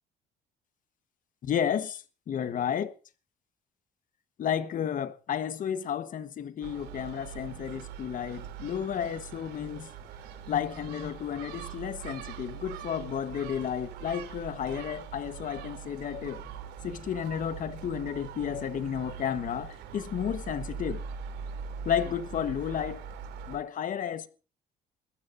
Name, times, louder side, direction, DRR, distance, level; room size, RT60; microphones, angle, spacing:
voice 1, 1.4-2.9 4.4-9.9 10.5-16.4 16.8-21.0 21.8-23.0 23.5-24.3, left 9 dB, 50° left, 1.3 m, -32 dB
Gull seagull, 6.6-23.6, right 7 dB, 80° right, 3.1 m, -42 dB
21.5 x 15.0 x 2.6 m
cardioid pair, 110°, 17 cm